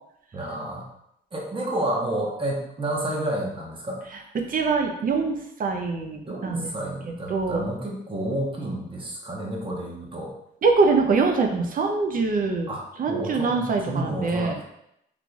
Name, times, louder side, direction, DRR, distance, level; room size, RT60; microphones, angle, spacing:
voice 1, 0.3-0.9 1.3-4.0 6.3-10.3 12.7-14.6, right 1 dB, 25° right, -2 dB, 1.0 m, -30 dB
voice 2, 4.5-6.7 7.3-7.6 10.6-12.7 13.0-14.6, right 4 dB, 45° right, 3 dB, 0.6 m, -23 dB
3.7 x 3.3 x 2.3 m, 0.77 s
cardioid pair, 90°, 20 cm